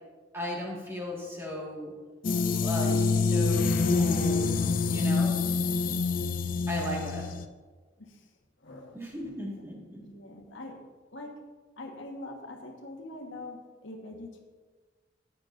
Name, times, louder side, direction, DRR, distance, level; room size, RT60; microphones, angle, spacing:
voice 1, 0.3-1.9 2.6-4.5 4.9-5.4 6.7-7.3 8.9-10.0, equal, 15° right, -2 dB, 1.7 m, -36 dB
sound 1, 2.2-7.5, left 4 dB, 45° left, 0.4 m, -26 dB
voice 2, 8.6-9.3 10.0-10.8 11.1-11.3 11.8-14.4, left 2 dB, 75° left, 2 dB, 1.4 m, -43 dB
13.5 x 9.3 x 2.6 m, 1.4 s
head